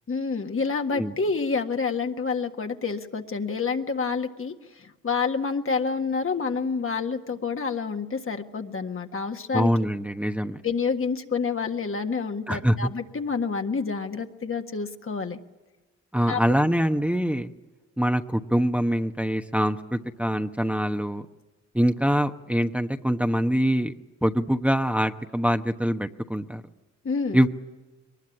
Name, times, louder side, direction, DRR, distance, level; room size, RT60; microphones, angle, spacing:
voice 1, 0.1-9.7 10.6-15.4 16.3-16.4 27.0-27.4, left 5 dB, 45° left, 5 dB, 1.7 m, -28 dB
voice 2, 9.5-10.6 12.5-12.9 16.1-17.5 18.0-21.2 21.7-23.9 24.2-26.6 27.3-27.5, equal, 5° right, 6 dB, 1.1 m, -24 dB
22.5 x 20.0 x 9.9 m, 1.1 s
cardioid pair, 60°, 30 cm